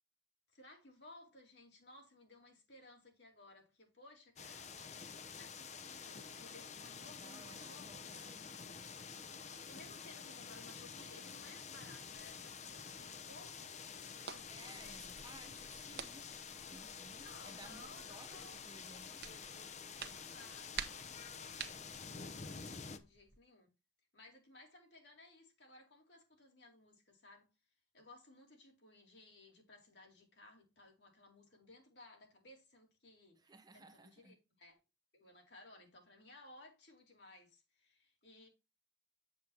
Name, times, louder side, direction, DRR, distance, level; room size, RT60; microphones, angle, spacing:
voice 1, 0.5-4.7 5.3-8.4 9.7-15.3 15.6-15.7 16.6-16.8 17.2-18.5 20.2-23.7 24.1-27.5 27.9-34.8 35.1-38.5, left 2 dB, 65° left, 4.1 m, -60 dB
sound 1, 4.4-23.0, left 6 dB, 35° left, 0.8 m, -49 dB
voice 2, 7.2-8.5 14.5-16.3 16.7-19.2 33.4-34.4, right 3 dB, 20° right, 0.7 m, -58 dB
sound 2, 14.1-23.4, right 7 dB, 60° right, 1.0 m, -52 dB
8.1 x 7.5 x 2.9 m
head